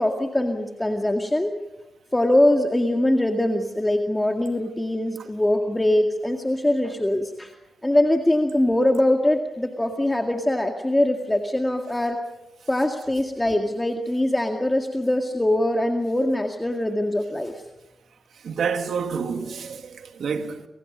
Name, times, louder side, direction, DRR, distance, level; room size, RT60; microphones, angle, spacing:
voice 1, 0.0-1.5 2.1-7.5 7.8-12.2 12.7-17.6, left 1 dB, 15° left, 2.1 m, -22 dB
voice 2, 18.4-20.7, right 6 dB, 80° right, 2.1 m, -28 dB
28.5 x 25.0 x 5.4 m
cardioid pair, 80°, 0 cm